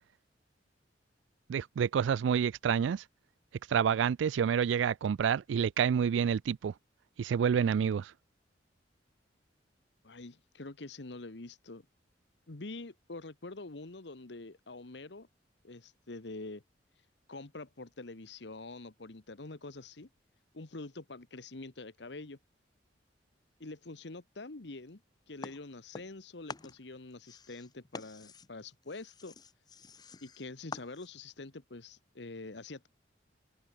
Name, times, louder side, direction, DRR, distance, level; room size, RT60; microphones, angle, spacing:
voice 1, 1.5-3.0 3.7-6.7 7.2-8.1, right 7 dB, 90° right, 0.3 m, -28 dB
voice 2, 10.0-11.9 12.5-15.3 15.6-16.6 17.3-20.1 20.5-22.4 23.6-25.0 25.3-29.3 30.2-32.9, left 2 dB, 70° left, 1.3 m, -45 dB
sound 1, 25.4-26.2 26.5-31.3, left 4 dB, 20° left, 0.5 m, -48 dB
head